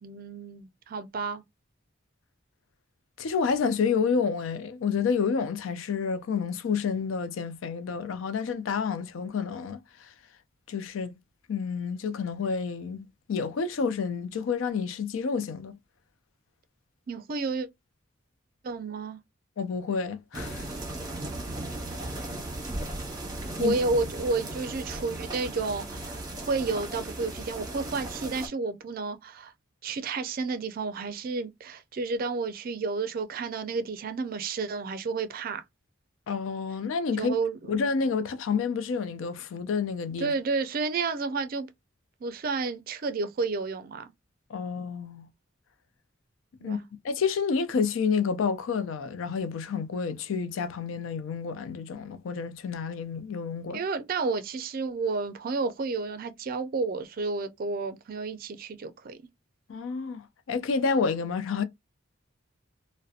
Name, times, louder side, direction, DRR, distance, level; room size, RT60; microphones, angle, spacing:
voice 1, 0.0-1.4 17.1-17.7 18.6-19.2 23.6-29.5 29.8-35.6 37.2-37.7 40.2-41.7 42.2-44.0 46.6-46.8 53.7-59.3, right 4 dB, 45° right, 0.4 m, -31 dB
voice 2, 3.2-10.1 10.7-11.2 11.5-15.8 19.6-20.7 23.6-23.8 36.3-37.3 37.7-40.3 44.5-45.3 46.6-46.8 47.0-53.8 59.7-61.6, left 5 dB, 85° left, 0.4 m, -29 dB
sound 1, 20.3-28.5, right 1 dB, 20° right, 0.8 m, -36 dB
2.6 x 2.1 x 2.4 m
head